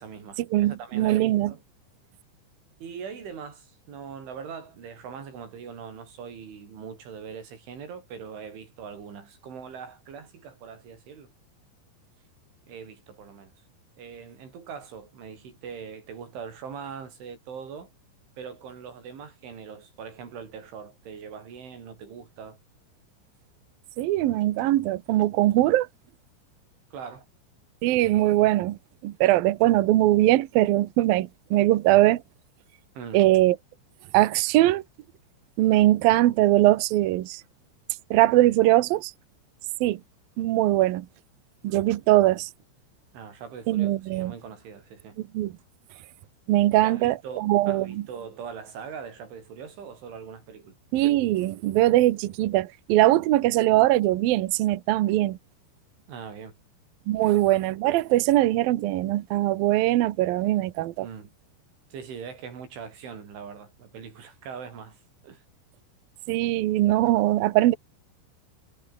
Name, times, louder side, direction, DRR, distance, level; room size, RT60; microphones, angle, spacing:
voice 1, 0.0-1.6 2.8-11.3 12.7-13.5 14.0-17.9 18.4-22.6 26.9-27.3 33.0-33.3 43.1-45.2 46.8-50.8 56.1-56.6 57.2-57.4 61.0-61.3 61.9-65.4, right 6 dB, 65° right, 7.6 m, -41 dB
voice 2, 0.5-1.5 24.0-25.9 27.8-28.8 29.0-32.2 33.1-33.6 34.1-34.8 35.6-37.4 38.1-39.1 39.8-40.0 40.4-41.1 41.6-42.5 43.7-44.3 45.3-45.5 46.5-48.0 50.9-55.4 57.1-61.1 66.3-67.7, right 15 dB, 85° right, 2.0 m, -21 dB
omnidirectional pair, 6.0 m